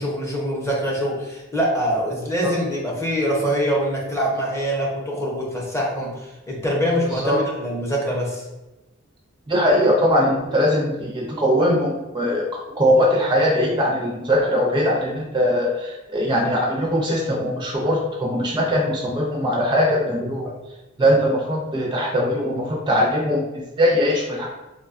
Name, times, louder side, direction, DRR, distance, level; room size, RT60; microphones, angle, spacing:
voice 1, 0.0-8.4, equal, 15° left, -3 dB, 0.7 m, -24 dB
voice 2, 7.1-7.4 9.5-20.5 21.0-24.5, equal, 20° right, -2 dB, 0.4 m, -21 dB
4.8 x 2.2 x 2.5 m, 1.0 s
head